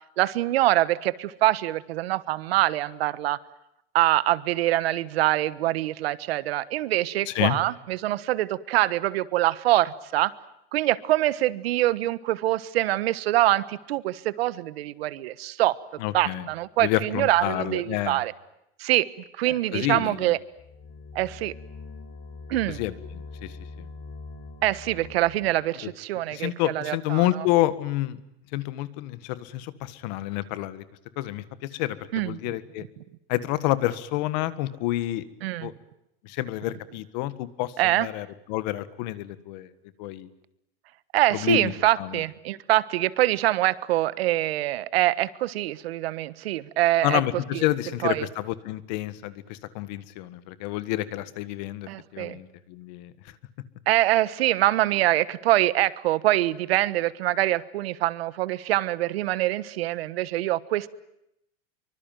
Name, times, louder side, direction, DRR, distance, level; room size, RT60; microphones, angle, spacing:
voice 1, 0.2-3.4 3.9-10.3 10.7-18.3 18.8-19.1 19.3-20.4 21.1-21.5 22.5-22.8 24.6-27.5 32.1-32.5 35.4-35.7 37.8-38.1 41.1-47.2 47.5-47.6 48.0-48.3 51.9-52.4 53.9-60.9, right 16 dB, 70° right, 17 dB, 1.4 m, -24 dB
voice 2, 7.3-7.6 16.0-16.4 16.8-18.2 19.5-20.3 22.7-23.9 26.3-28.2 28.5-30.8 31.2-32.8 33.3-35.2 35.6-35.7 36.2-39.7 40.0-40.3 41.3-41.7 42.0-42.2 47.0-53.1, left 15 dB, 45° left, 15 dB, 1.6 m, -29 dB
sound 1, 20.5-25.7, left 3 dB, 25° left, 4.0 m, -43 dB
25.5 x 24.5 x 9.1 m, 0.82 s
supercardioid pair, 180°, 32 cm